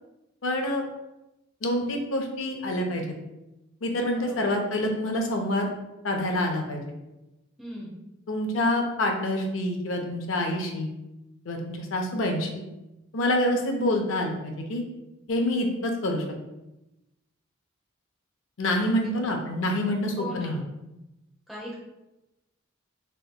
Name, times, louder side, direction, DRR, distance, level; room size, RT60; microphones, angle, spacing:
voice 1, 0.4-0.9 1.6-3.1 3.8-5.7 6.0-6.8 8.3-10.9 11.5-12.5 13.1-14.8 15.3-16.2 18.6-20.6, left 1 dB, 70° left, 3 dB, 0.5 m, -27 dB
voice 2, 4.1-4.5 7.6-8.0 18.8-19.5 20.2-20.7 21.5-21.8, left 1 dB, ahead, -6 dB, 0.6 m, -40 dB
3.4 x 2.8 x 2.2 m, 0.97 s
head